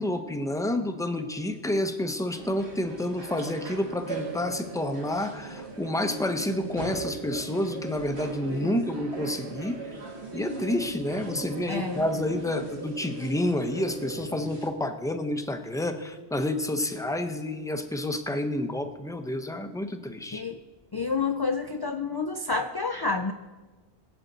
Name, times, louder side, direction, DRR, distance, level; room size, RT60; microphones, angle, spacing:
voice 1, 0.0-9.8 10.3-20.4, left 1 dB, 5° left, 7 dB, 0.6 m, -29 dB
sound 1, 2.4-14.7, right 3 dB, 70° right, 1.8 m, -38 dB
voice 2, 11.7-12.1 20.3-20.6 20.9-23.3, left 4 dB, 40° left, 4 dB, 0.3 m, -29 dB
21.5 x 7.8 x 4.0 m, 1.2 s
omnidirectional pair, 1.1 m